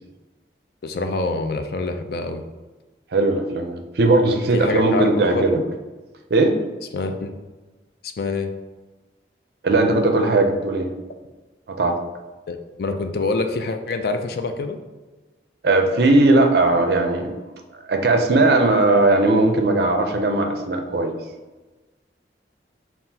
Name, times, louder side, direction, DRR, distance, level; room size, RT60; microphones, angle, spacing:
voice 1, 0.8-2.4 4.5-5.7 6.9-7.3 8.0-8.5 12.5-14.8, left 3 dB, 55° left, 6 dB, 0.3 m, -26 dB
voice 2, 3.1-5.6 6.3-6.6 9.6-10.9 11.7-12.0 15.6-17.4 17.8-21.2, right 2 dB, 60° right, 4 dB, 0.5 m, -18 dB
5.6 x 2.4 x 2.7 m, 1.2 s
head